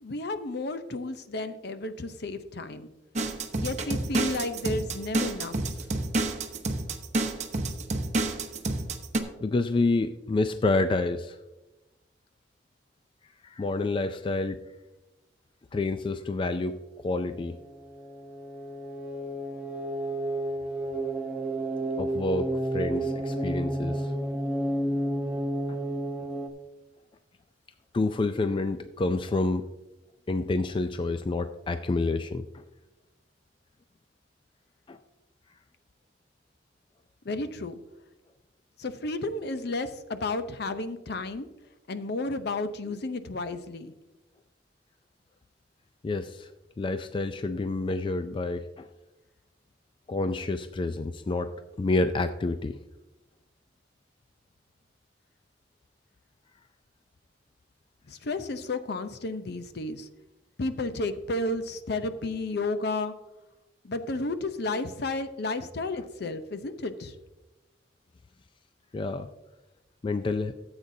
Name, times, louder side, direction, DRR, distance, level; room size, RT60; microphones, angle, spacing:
voice 1, 0.0-2.9 3.6-5.5 37.2-37.8 38.8-41.5 41.9-43.9 58.1-60.1 60.6-63.1 63.8-67.1, left 2 dB, 60° left, 10 dB, 0.7 m, -32 dB
sound 1, 3.2-9.2, right 2 dB, 40° right, 0.8 m, -29 dB
voice 2, 9.4-11.4 13.4-14.6 15.7-16.8 17.0-17.6 22.0-24.1 25.7-25.8 27.9-29.7 30.3-32.6 34.9-35.0 46.0-46.5 46.8-48.9 50.1-51.5 51.8-52.8 66.0-66.1 68.9-69.3 70.0-70.5, left 2 dB, 30° left, 10 dB, 0.3 m, -28 dB
sound 2, 17.1-26.5, right 1 dB, 10° right, 0.6 m, -31 dB
14.0 x 7.9 x 2.7 m, 1.0 s
head